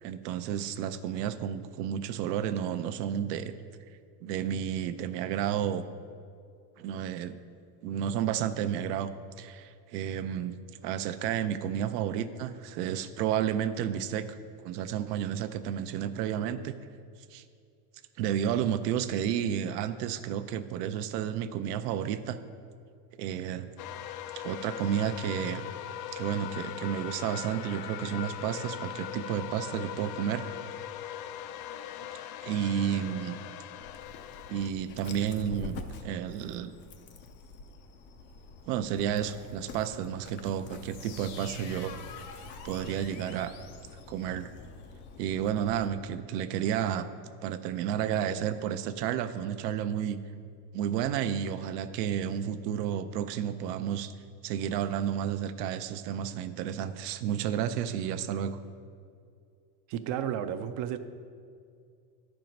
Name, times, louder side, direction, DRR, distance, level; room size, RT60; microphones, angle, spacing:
voice 1, 0.0-3.5 4.2-5.8 6.8-7.3 7.8-9.1 9.4-10.6 10.8-14.3 14.6-16.7 17.3-17.4 18.2-22.4 23.2-23.7 24.3-25.6 26.1-30.4 30.7-30.8 32.4-33.4 34.5-36.7 38.7-41.9 42.6-43.5 44.1-44.5 45.2-47.1 47.4-50.2 50.7-54.1 54.4-58.6, right 9 dB, 80° right, 11 dB, 0.7 m, -31 dB
sound 1, 23.8-34.7, left 11 dB, 90° left, 0.5 m, -40 dB
Dog, 33.8-45.9, left 4 dB, 25° left, 0.3 m, -47 dB
sound 2, 40.8-44.6, left 6 dB, 65° left, 0.9 m, -48 dB
voice 2, 59.9-61.0, right 10 dB, 40° right, 10 dB, 0.5 m, -32 dB
10.5 x 4.6 x 5.2 m, 2.3 s
supercardioid pair, 125°, 48 cm